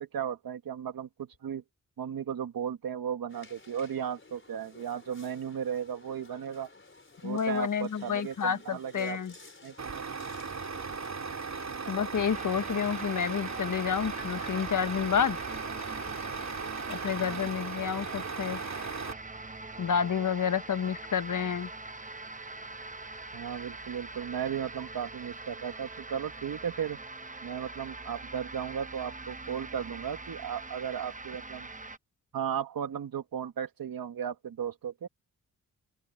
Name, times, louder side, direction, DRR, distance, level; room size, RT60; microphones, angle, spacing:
voice 1, 0.0-1.6 2.0-6.7 7.2-9.2 9.6-10.2 11.7-12.0 17.2-17.5 23.3-27.0 27.4-31.7 32.3-35.1, right 8 dB, 80° right, 2.1 m, -35 dB
sound 1, 3.3-12.4, left 3 dB, 35° left, 4.5 m, -54 dB
voice 2, 7.2-9.3 11.9-15.4 16.9-18.6 19.8-21.7, left 7 dB, 60° left, 1.5 m, -29 dB
Truck, 9.8-19.1, right 5 dB, 50° right, 2.8 m, -37 dB
sound 2, 12.1-32.0, right 3 dB, 20° right, 1.0 m, -43 dB
open air
cardioid pair, 45°, 35 cm